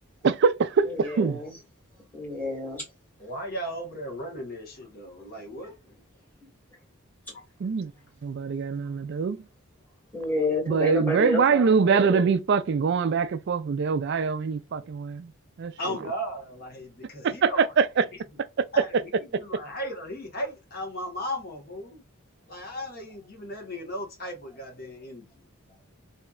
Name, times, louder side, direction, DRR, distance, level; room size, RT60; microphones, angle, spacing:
voice 1, 0.2-1.4 7.6-7.9 8.2-9.4 10.7-15.3 15.6-15.7 17.2-18.0, right 5 dB, 55° right, 0.3 m, -23 dB
voice 2, 0.8-1.6 2.1-2.9 10.1-12.4, left 2 dB, 10° left, 1.7 m, -30 dB
voice 3, 3.2-6.0 15.8-17.7 18.7-22.0 22.5-25.5, equal, 45° left, 1.3 m, -36 dB
3.2 x 2.7 x 2.4 m
head